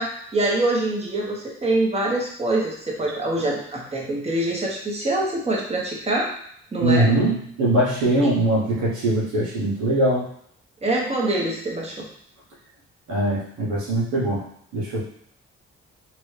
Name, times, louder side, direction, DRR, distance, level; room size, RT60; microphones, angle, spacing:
voice 1, 0.0-6.3 6.7-7.1 8.2-8.3 10.8-12.1, right 2 dB, 20° right, -3 dB, 1.2 m, -24 dB
voice 2, 6.8-10.3 13.1-14.5 14.7-15.0, right 1 dB, 80° right, -6 dB, 1.3 m, -21 dB
3.0 x 2.7 x 3.3 m, 0.67 s
supercardioid pair, 60°, 29 cm